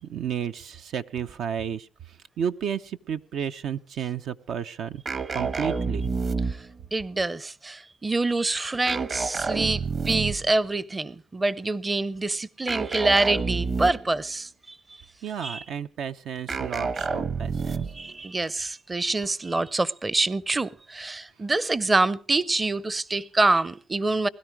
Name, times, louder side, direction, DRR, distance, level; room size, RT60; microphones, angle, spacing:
voice 1, 0.0-5.0 5.3-6.1 15.2-17.8, right 8 dB, 75° right, 0.7 m, -32 dB
sound 1, 5.0-6.8 8.9-10.5 12.7-14.2 16.5-18.1, right 5 dB, 50° right, 1.7 m, -29 dB
voice 2, 6.9-14.8 15.4-15.6 17.9-24.3, right 2 dB, 20° right, 0.6 m, -26 dB
20.5 x 12.5 x 4.7 m
cardioid pair, 90°, 0 cm